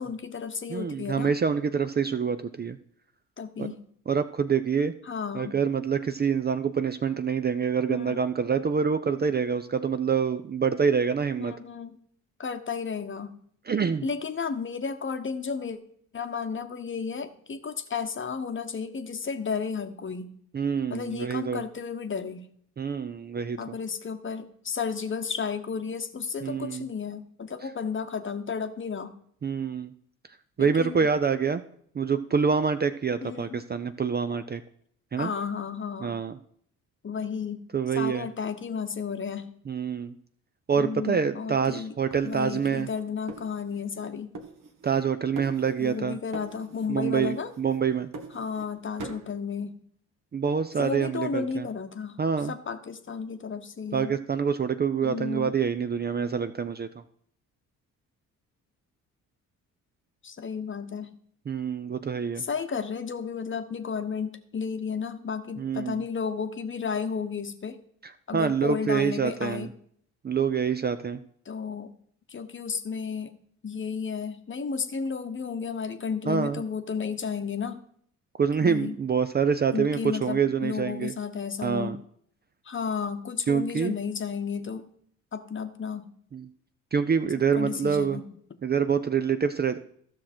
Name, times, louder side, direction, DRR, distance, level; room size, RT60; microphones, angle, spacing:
voice 1, 0.0-1.3 3.4-3.8 5.1-5.5 7.9-8.2 11.4-12.0 12.4-13.3 14.0-15.8 16.1-20.3 20.9-22.5 23.6-29.2 30.6-31.1 33.2-33.6 35.2-36.2 37.0-37.6 37.9-39.5 40.7-41.9 42.2-44.3 45.8-47.5 48.3-49.8 50.8-52.2 52.4-54.1 55.0-55.6 60.2-61.1 62.4-67.8 68.3-69.7 71.4-71.9 72.3-73.3 73.6-77.8 78.6-79.0 79.7-82.0 82.6-84.8 85.3-86.1 87.6-88.3, left 6 dB, 30° left, 9 dB, 1.0 m, -33 dB
voice 2, 0.7-2.8 3.6-3.7 4.1-4.9 5.3-11.5 13.7-14.1 20.5-21.6 22.8-23.8 26.4-26.9 29.4-29.9 30.6-31.6 31.9-34.6 35.1-35.3 36.0-36.4 37.7-38.3 39.7-40.2 40.7-42.9 44.8-46.2 46.9-48.1 50.3-51.7 52.2-52.6 53.9-56.9 61.5-62.5 65.6-66.0 68.3-69.7 70.2-71.2 76.3-76.6 78.4-81.1 81.6-82.0 83.5-84.0 86.3-86.5 86.9-88.2 88.6-89.8, right 6 dB, 25° right, 10 dB, 0.5 m, -26 dB
sound 1, 42.1-44.1 44.3-45.1 45.4-46.0 46.3-46.9 47.2-48.7 49.0-49.3, right 3 dB, 60° right, 1.4 m, -43 dB
13.0 x 6.1 x 4.4 m, 0.64 s
hypercardioid pair, 55°, 37 cm